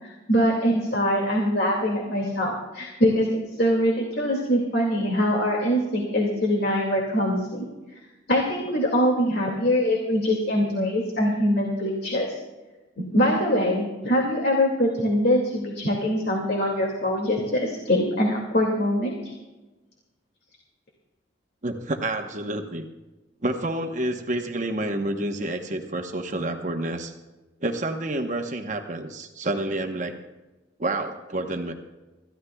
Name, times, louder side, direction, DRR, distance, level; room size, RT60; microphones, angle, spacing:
voice 1, 0.0-7.7 8.3-12.4 13.0-19.3, equal, 55° left, -1 dB, 2.3 m, -23 dB
voice 2, 21.6-22.9 23.4-27.1 27.6-30.2 30.8-31.7, right 1 dB, 40° right, 4 dB, 1.0 m, -29 dB
26.5 x 14.5 x 2.3 m, 1.1 s
head